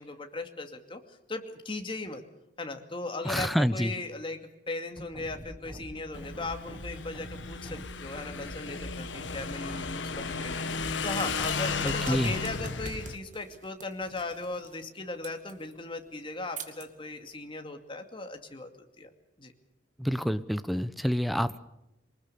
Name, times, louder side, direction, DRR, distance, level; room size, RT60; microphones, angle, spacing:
voice 1, 0.0-2.2 2.6-4.4 4.7-19.1 19.4-19.5, left 2 dB, 30° left, 5 dB, 2.4 m, -38 dB
voice 2, 3.2-3.9 11.8-12.3 20.0-21.6, equal, ahead, 12 dB, 0.8 m, -28 dB
sound 1, 5.0-13.0, equal, 20° right, 1.6 m, -44 dB
Motorcycle / Engine, 6.1-13.2, left 5 dB, 80° left, 1.4 m, -35 dB
sound 2, 11.2-17.4, right 5 dB, 45° right, 2.2 m, -47 dB
24.0 x 20.0 x 6.9 m, 0.89 s
head